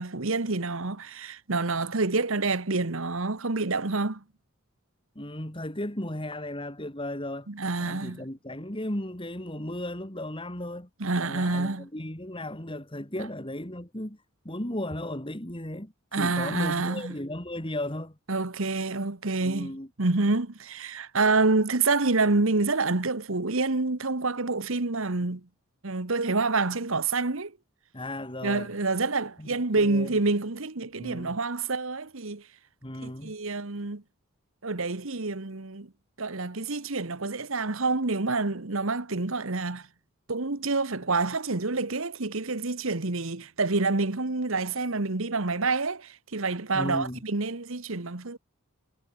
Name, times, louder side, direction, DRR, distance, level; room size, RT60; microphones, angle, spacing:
voice 1, 0.0-4.2 7.5-8.2 11.0-11.9 16.1-17.1 18.3-19.7 20.0-25.5 25.8-27.6 28.4-32.4 33.0-34.0 34.6-35.9 36.2-39.9 40.3-48.4, right 3 dB, 65° right, 1.4 m, -27 dB
voice 2, 5.1-7.5 7.8-10.9 11.2-14.2 14.4-18.2 19.4-19.9 27.9-28.7 29.4-29.5 29.8-30.1 31.0-31.4 32.8-33.3 46.7-47.2, left 1 dB, 25° left, 3.1 m, -35 dB
head